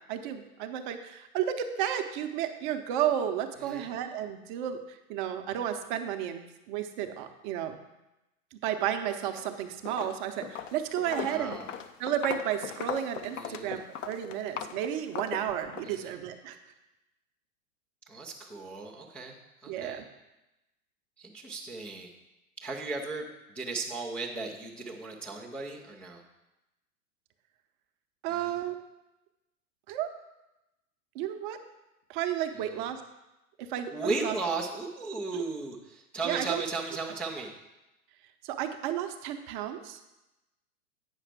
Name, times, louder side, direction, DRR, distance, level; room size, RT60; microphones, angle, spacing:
voice 1, 0.1-7.8 8.6-11.6 12.0-16.6 19.7-20.0 28.2-28.8 29.9-30.1 31.1-31.6 32.1-33.0 33.6-34.4 35.3-35.4 36.2-36.6 38.4-40.0, right 10 dB, 35° right, 7 dB, 0.7 m, -32 dB
voice 2, 3.6-3.9 11.0-11.7 13.3-13.8 15.8-16.1 18.1-19.4 19.6-20.0 21.2-22.1 22.6-23.3 23.5-26.2 28.3-28.5 32.6-32.8 33.9-37.5, right 3 dB, 5° left, -6 dB, 0.3 m, -36 dB
Walk footsteps, 9.2-9.5 9.8-15.9, left 9 dB, 55° left, 0.7 m, -39 dB
9.0 x 5.6 x 4.7 m, 0.96 s
figure-of-eight pair, 105°, 45 cm